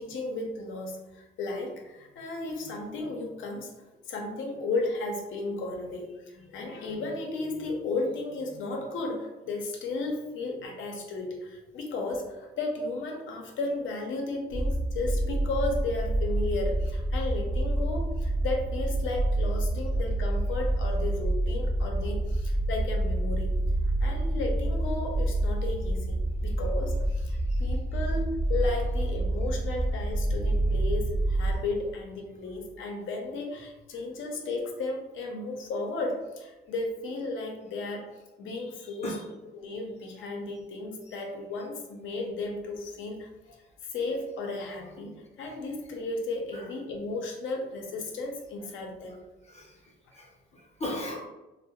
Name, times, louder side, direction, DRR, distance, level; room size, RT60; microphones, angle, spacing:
voice 1, 0.0-3.7 4.1-23.6 24.0-38.1 38.4-39.2 39.5-43.3 43.9-49.1, left 2 dB, 75° left, 1 dB, 0.6 m, -34 dB
sound 1, 14.5-31.6, right 1 dB, 40° right, 0.6 m, -28 dB
voice 2, 49.4-51.3, left 1 dB, 35° left, -2 dB, 0.6 m, -38 dB
2.2 x 2.1 x 2.8 m, 1.0 s
cardioid pair, 90°, 20 cm